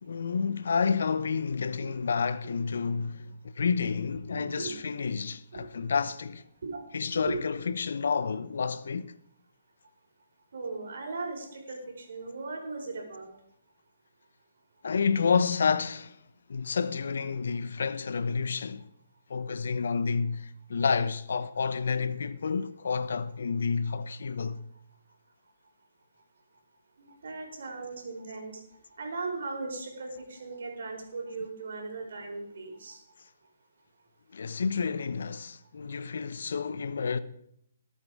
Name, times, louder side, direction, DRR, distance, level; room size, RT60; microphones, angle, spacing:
voice 1, 0.0-6.4 6.9-9.2 14.8-16.2 16.5-18.9 19.3-24.6 34.3-37.2, left 5 dB, 75° left, 1.0 m, -29 dB
voice 2, 4.3-4.8 5.5-5.6 6.6-6.8 7.1-7.4 10.5-13.3 27.0-28.5 29.0-33.0, right 3 dB, 70° right, 4.6 m, -38 dB
19.5 x 8.5 x 4.9 m
hypercardioid pair, 145°, 0 cm